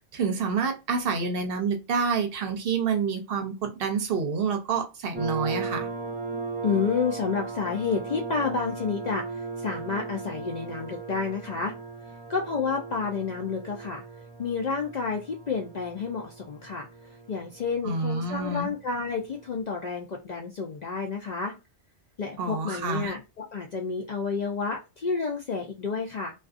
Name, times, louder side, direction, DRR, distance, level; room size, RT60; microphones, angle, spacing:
voice 1, 0.1-5.9 17.8-18.7 22.4-23.1, right 5 dB, 60° right, 4 dB, 0.8 m, -28 dB
sound 1, 5.1-19.6, right 4 dB, 15° right, 0.4 m, -38 dB
voice 2, 6.6-11.7 12.3-14.0 14.4-16.9 17.3-21.5 22.2-26.3, left 5 dB, 60° left, 1 dB, 0.4 m, -30 dB
2.4 x 2.3 x 2.4 m, 0.27 s
omnidirectional pair, 1.2 m